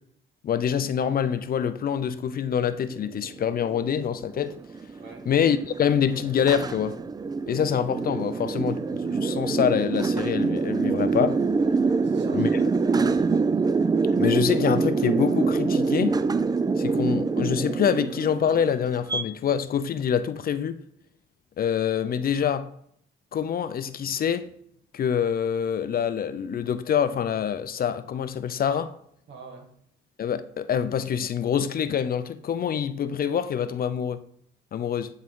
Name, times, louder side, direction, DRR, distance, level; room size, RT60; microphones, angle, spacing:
voice 1, 0.4-4.5 5.3-7.0 7.5-11.4 12.3-12.5 14.2-16.1 16.8-20.8 21.6-22.7 23.3-24.5 24.9-28.9 30.2-34.2 34.7-35.1, left 8 dB, 50° left, 0.5 m, -25 dB
sound 1, 2.9-19.2, right 4 dB, 20° right, 0.3 m, -25 dB
voice 2, 5.0-5.3 12.0-12.5 12.9-13.4 28.6-28.8 29.3-29.7, right 3 dB, 65° right, 1.6 m, -42 dB
10.0 x 3.7 x 3.7 m
cardioid pair, 90°, 20 cm